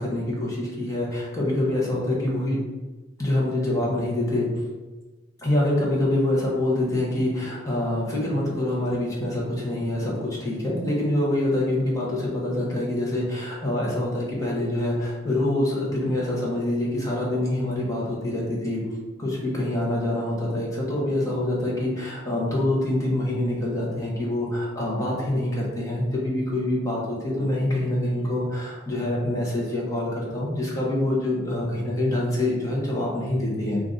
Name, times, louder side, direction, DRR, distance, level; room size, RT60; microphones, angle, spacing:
voice 1, 0.0-2.6 3.2-4.5 5.4-18.8 19.2-33.8, left 1 dB, 15° left, -5 dB, 0.9 m, -25 dB
3.7 x 2.5 x 3.8 m, 1.2 s
head